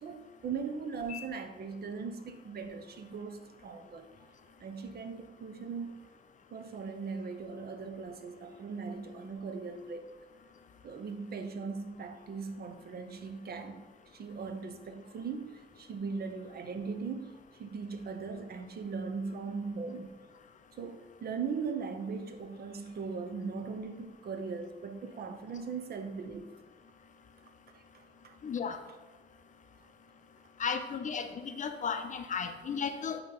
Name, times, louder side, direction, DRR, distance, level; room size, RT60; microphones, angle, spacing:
voice 1, 0.0-4.1 4.6-6.0 6.5-10.1 10.8-13.8 14.1-20.1 20.8-26.5 27.7-28.4 28.9-29.0, right 5 dB, 50° right, 7 dB, 0.6 m, -39 dB
voice 2, 28.4-28.8 30.6-33.2, left 6 dB, 40° left, 8 dB, 0.5 m, -34 dB
8.7 x 2.9 x 3.9 m, 1.2 s
cardioid pair, 90°, 20 cm